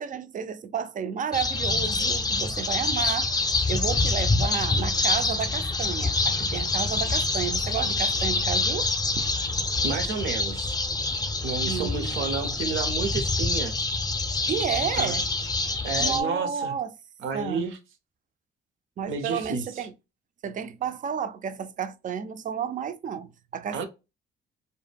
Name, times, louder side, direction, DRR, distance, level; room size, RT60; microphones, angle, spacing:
voice 1, 0.0-3.3 3.7-9.3 11.7-12.3 14.5-15.2 16.0-16.9 17.3-17.6 19.0-19.9 20.4-23.8, right 7 dB, 40° right, 0.4 m, -31 dB
sound 1, 1.3-16.2, left 3 dB, 20° left, 0.5 m, -26 dB
voice 2, 9.8-10.7 11.4-13.7 15.0-15.2 15.8-16.7 17.2-17.8 19.1-19.9 23.7-23.9, right 5 dB, 80° right, 0.7 m, -31 dB
2.1 x 2.1 x 3.3 m
cardioid pair, 90°, 20 cm